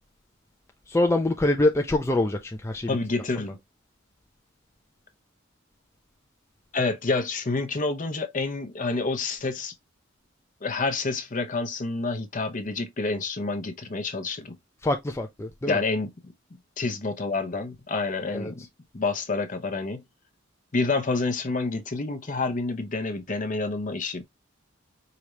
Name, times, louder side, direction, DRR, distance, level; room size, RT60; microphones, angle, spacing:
voice 1, 0.9-3.0 14.8-15.8 18.3-18.5, left 2 dB, 15° left, 0.4 m, -24 dB
voice 2, 2.9-3.6 6.7-9.7 10.6-14.6 15.7-16.1 16.8-18.7 18.9-20.0 20.7-24.2, left 3 dB, 40° left, 0.8 m, -28 dB
4.9 x 2.8 x 3.1 m
head